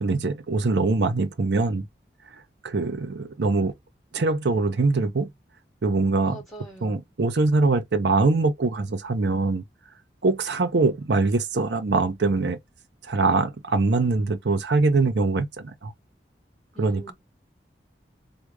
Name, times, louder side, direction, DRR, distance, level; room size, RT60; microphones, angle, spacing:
voice 1, 0.0-1.9 2.6-3.7 4.1-5.3 5.8-6.4 6.8-9.6 10.2-12.6 13.1-15.9 16.8-17.1, right 3 dB, 80° right, 0.6 m, -23 dB
voice 2, 6.2-7.0 16.7-17.1, right 2 dB, ahead, 1.8 m, -43 dB
3.6 x 2.2 x 3.3 m
head